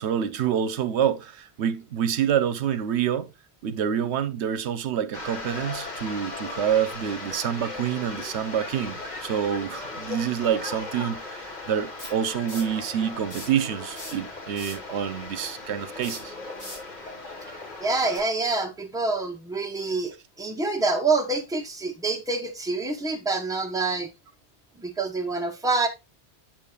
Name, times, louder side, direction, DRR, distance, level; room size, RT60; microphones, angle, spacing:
voice 1, 0.0-3.3 3.6-16.3, right 9 dB, 80° right, 0.9 m, -27 dB
sound 1, 5.1-18.3, left 3 dB, 40° left, 1.7 m, -38 dB
sound 2, 12.0-12.8 13.2-13.6 13.9-14.9 15.9-16.9 18.1-18.2, equal, 85° left, 4.2 m, -40 dB
voice 2, 17.8-24.1 24.7-25.9, right 3 dB, 5° right, 0.9 m, -26 dB
7.4 x 7.2 x 2.3 m
omnidirectional pair, 1.1 m